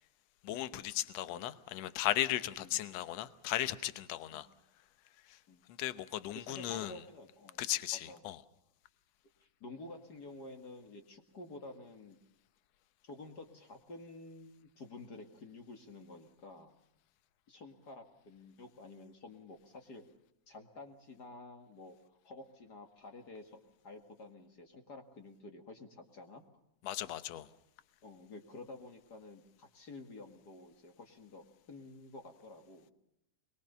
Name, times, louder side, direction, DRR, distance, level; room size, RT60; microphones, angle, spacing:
voice 1, 0.4-4.5 5.3-5.4 5.8-6.9 7.6-8.4 26.8-27.5, left 14 dB, 65° left, 1.9 m, -36 dB
voice 2, 6.3-7.7 8.0-8.2 9.4-12.2 13.0-16.8 17.5-20.1 20.5-26.4 28.0-32.9, left 2 dB, 35° left, 2.1 m, -51 dB
22.5 x 22.5 x 6.9 m
omnidirectional pair, 3.5 m